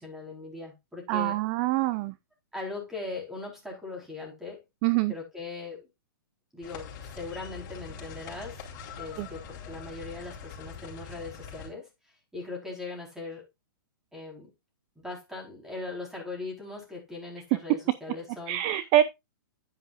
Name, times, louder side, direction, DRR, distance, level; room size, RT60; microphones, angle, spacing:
voice 1, 0.0-1.4 2.5-4.6 5.1-5.9 6.5-8.6 9.0-11.9 12.3-13.4 14.1-14.5 15.0-18.6, left 3 dB, 5° right, 4.5 m, -39 dB
voice 2, 1.1-2.1 4.8-5.1 9.2-9.3 18.5-19.0, right 14 dB, 30° right, 0.6 m, -25 dB
sound 1, 6.6-11.7, left 6 dB, 35° left, 4.2 m, -43 dB
10.0 x 10.0 x 2.6 m
hypercardioid pair, 155°, 12 cm